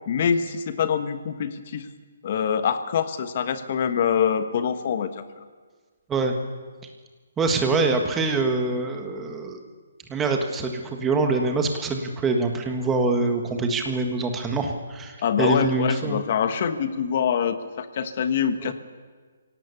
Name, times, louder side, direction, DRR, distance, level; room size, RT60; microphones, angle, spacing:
voice 1, 0.1-1.9 2.2-5.2 15.2-18.7, left 7 dB, 40° left, 10 dB, 1.3 m, -24 dB
voice 2, 7.4-9.6 10.1-16.2 18.6-18.7, right 3 dB, 10° right, 4 dB, 1.5 m, -25 dB
25.5 x 17.5 x 7.0 m, 1.5 s
hypercardioid pair, 170°, 0 cm